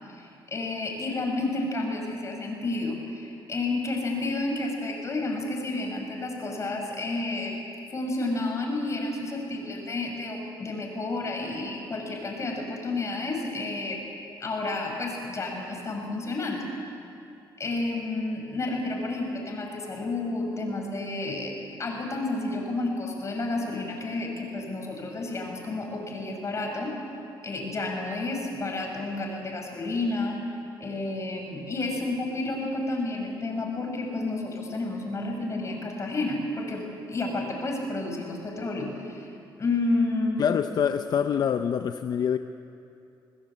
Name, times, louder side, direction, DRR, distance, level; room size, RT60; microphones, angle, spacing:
voice 1, 0.1-7.5 7.9-14.0 14.4-16.6 17.6-26.9 27.4-39.3 39.6-40.6, left 2 dB, 35° left, 1 dB, 6.4 m, -31 dB
voice 2, 40.4-42.4, left 8 dB, 50° left, 8 dB, 0.7 m, -25 dB
28.0 x 20.0 x 8.2 m, 2.7 s
cardioid pair, 115°, 9 cm